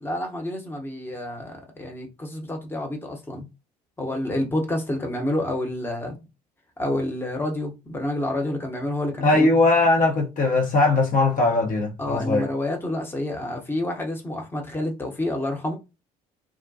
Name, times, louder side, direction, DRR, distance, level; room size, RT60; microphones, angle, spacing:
voice 1, 0.0-3.5 4.0-6.2 6.8-9.5 12.0-15.8, left 1 dB, 10° left, 0.9 m, -28 dB
voice 2, 9.2-12.5, left 2 dB, 45° left, 0.8 m, -20 dB
2.4 x 2.1 x 2.6 m
figure-of-eight pair, 50°, 20 cm